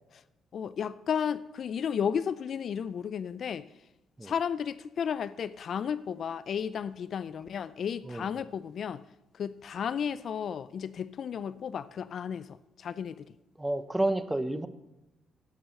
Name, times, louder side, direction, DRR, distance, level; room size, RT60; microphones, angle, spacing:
voice 1, 0.5-3.7 4.2-9.0 9.3-13.3, left 7 dB, 60° left, 17 dB, 0.4 m, -33 dB
voice 2, 13.6-14.7, right 1 dB, 15° right, 12 dB, 1.0 m, -30 dB
11.0 x 9.1 x 6.5 m, 0.96 s
supercardioid pair, 65°, 0 cm